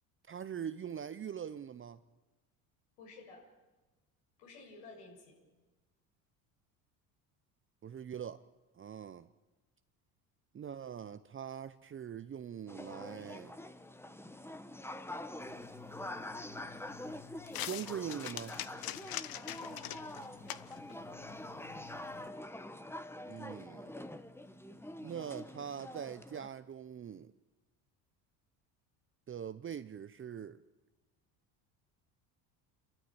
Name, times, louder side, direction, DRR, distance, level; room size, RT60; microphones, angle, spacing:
voice 1, 0.3-2.0 7.8-8.4 8.7-9.3 10.5-13.6 17.6-18.6 23.3-23.9 25.0-27.3 29.3-30.6, right 8 dB, 30° right, 0.8 m, -42 dB
voice 2, 3.0-3.4 4.4-5.4 19.4-20.2, left 3 dB, 80° left, 7.8 m, -53 dB
sound 1, 12.7-26.5, left 1 dB, 5° left, 1.3 m, -46 dB
sound 2, 15.4-22.3, left 13 dB, 55° left, 1.1 m, -45 dB
29.5 x 13.5 x 8.9 m
supercardioid pair, 80°, 43 cm